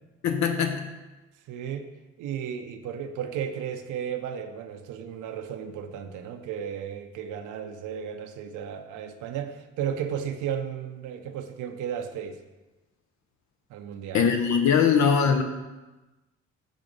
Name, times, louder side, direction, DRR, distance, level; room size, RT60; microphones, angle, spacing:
voice 1, 0.2-0.9 14.1-15.4, left 6 dB, 65° left, 6 dB, 0.6 m, -21 dB
voice 2, 1.5-1.9 2.2-12.4 13.7-14.3, right 8 dB, 85° right, 6 dB, 0.6 m, -34 dB
6.2 x 3.8 x 5.2 m, 1.1 s
cardioid pair, 90°, 30 cm